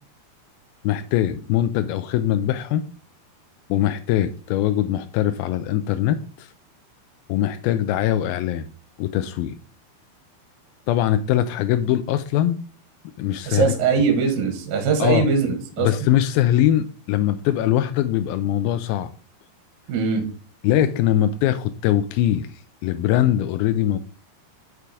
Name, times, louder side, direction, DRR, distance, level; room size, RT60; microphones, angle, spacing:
voice 1, 0.8-2.8 3.7-6.5 7.3-8.7 9.0-9.5 10.9-12.6 13.2-13.7 15.0-15.3 15.8-19.1 20.6-22.5 22.8-24.0, left 12 dB, 85° left, 2.1 m, -22 dB
voice 2, 13.5-15.9 19.9-20.2, right 5 dB, 65° right, 2.7 m, -21 dB
6.7 x 5.8 x 4.8 m
omnidirectional pair, 4.7 m